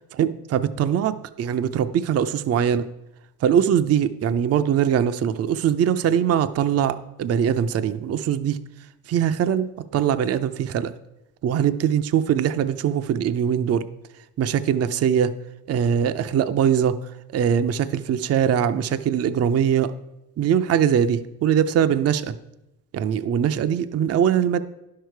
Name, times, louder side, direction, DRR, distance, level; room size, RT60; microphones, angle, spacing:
voice 1, 0.2-2.8 3.4-8.6 9.1-9.7 9.9-10.9 11.4-13.8 14.4-15.3 15.7-17.0 17.3-19.9 20.4-22.3 22.9-24.6, right 9 dB, 40° right, 11 dB, 0.5 m, -21 dB
10.0 x 6.6 x 4.6 m, 0.95 s
cardioid pair, 95°, 37 cm